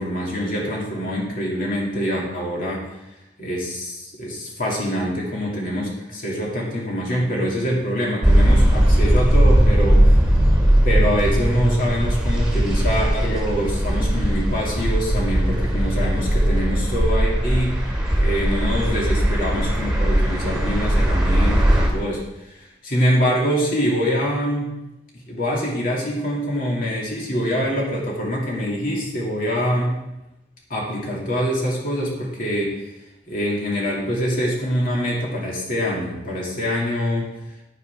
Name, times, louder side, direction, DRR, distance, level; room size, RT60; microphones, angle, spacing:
voice 1, 0.0-2.8 3.4-10.0 10.8-17.8 18.1-24.7 25.3-30.0 30.7-32.7 33.3-37.3, equal, 45° left, -3 dB, 2.6 m, -24 dB
sound 1, 8.2-21.9, equal, 5° right, 2.0 m, -18 dB
9.7 x 9.2 x 3.6 m, 0.93 s
head